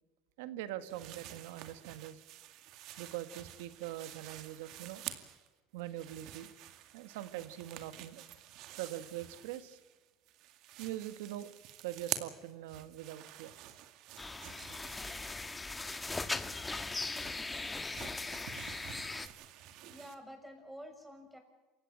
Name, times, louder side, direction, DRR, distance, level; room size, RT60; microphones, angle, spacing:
voice 1, 0.4-2.2 3.0-5.0 5.7-6.5 6.9-8.2 8.7-9.8 10.8-11.6 11.8-13.5, right 13 dB, 85° right, 12 dB, 1.7 m, -43 dB
sound 1, 0.9-5.5 5.8-10.0 10.3-20.2, right 12 dB, 65° right, 2.3 m, -48 dB
sound 2, 14.2-19.3, left 3 dB, 15° left, 1.5 m, -39 dB
voice 2, 19.9-21.4, equal, ahead, 5 dB, 6.4 m, -49 dB
28.5 x 16.0 x 7.5 m, 1.2 s
supercardioid pair, 110°, 0 cm